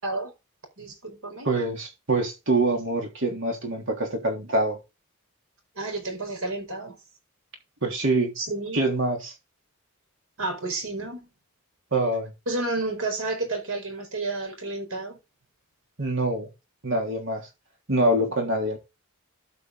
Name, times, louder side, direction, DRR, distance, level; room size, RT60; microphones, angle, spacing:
voice 1, 0.8-1.5 5.8-7.0 8.4-8.8 10.4-11.3 12.5-15.2, right 2 dB, 75° right, 4.6 m, -31 dB
voice 2, 1.4-4.8 7.8-8.3 8.7-9.3 11.9-12.3 16.0-16.5 16.8-17.5 17.9-18.8, right 2 dB, 60° right, 3.4 m, -25 dB
13.0 x 6.2 x 3.9 m
head